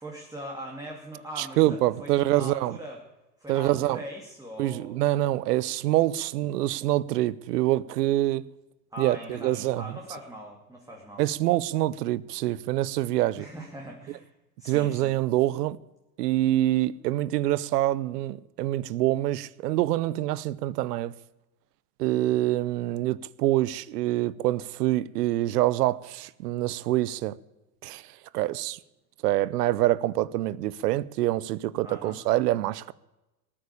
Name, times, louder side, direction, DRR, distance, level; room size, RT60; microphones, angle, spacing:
voice 1, 0.0-3.0 3.4-5.0 8.9-11.2 13.4-14.3 14.6-15.1 31.8-32.2, right 1 dB, 5° right, 2.4 m, -41 dB
voice 2, 1.4-2.8 3.5-4.0 4.6-8.5 9.0-10.0 11.2-13.5 14.7-15.8 16.2-21.1 22.0-27.4 27.8-28.8 29.2-32.9, right 15 dB, 85° right, 0.8 m, -26 dB
18.5 x 8.7 x 8.3 m
supercardioid pair, 115°, 46 cm